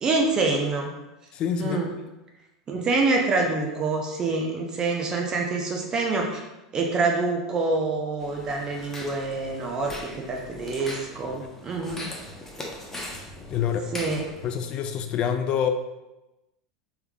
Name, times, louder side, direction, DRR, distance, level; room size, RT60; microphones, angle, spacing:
voice 1, 0.0-0.9 1.6-1.9 2.7-6.4 6.7-12.0 13.9-14.3, right 3 dB, 30° right, 1 dB, 0.5 m, -26 dB
voice 2, 1.4-1.8 13.5-13.9 14.4-15.7, left 8 dB, 40° left, 7 dB, 0.3 m, -26 dB
sound 1, 8.2-14.7, left 1 dB, 15° left, 0.7 m, -40 dB
3.3 x 3.2 x 2.2 m, 1.0 s
figure-of-eight pair, 80°, 2 cm